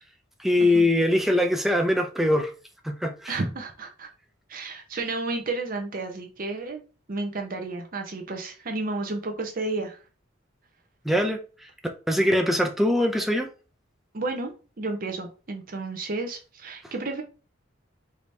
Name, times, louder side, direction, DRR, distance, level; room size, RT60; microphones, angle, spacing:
voice 1, 0.4-2.5 2.8-3.4 11.1-11.4 12.1-13.5, left 1 dB, ahead, 0.5 m, -22 dB
voice 2, 3.3-4.1 4.5-6.8 7.1-10.0 14.1-17.2, right 3 dB, 45° right, 0.7 m, -32 dB
4.9 x 2.7 x 3.2 m
head